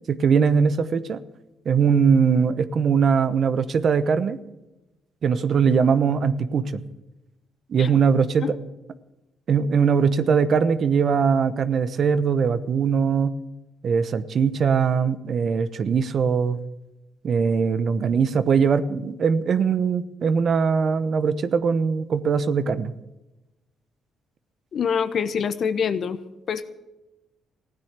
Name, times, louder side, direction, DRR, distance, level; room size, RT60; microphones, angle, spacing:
voice 1, 0.1-1.2 1.6-4.4 5.2-6.8 7.7-8.5 9.5-13.3 13.8-16.6 17.2-22.9, right 6 dB, 55° right, 13 dB, 0.9 m, -21 dB
voice 2, 24.7-26.2 26.5-26.7, left 7 dB, 55° left, 12 dB, 1.0 m, -25 dB
15.5 x 9.9 x 8.2 m, 1.0 s
cardioid pair, 90°, 0 cm